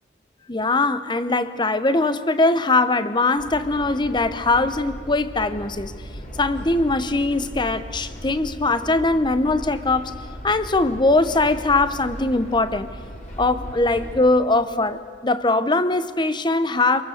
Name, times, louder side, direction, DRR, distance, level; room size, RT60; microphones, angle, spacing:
voice 1, 0.5-5.9 6.4-10.1 10.4-12.9 13.4-17.0, left 2 dB, 25° left, 13 dB, 0.8 m, -21 dB
sound 1, 3.4-14.2, equal, 40° left, 3.2 m, -37 dB
26.5 x 22.5 x 6.6 m, 2.1 s
head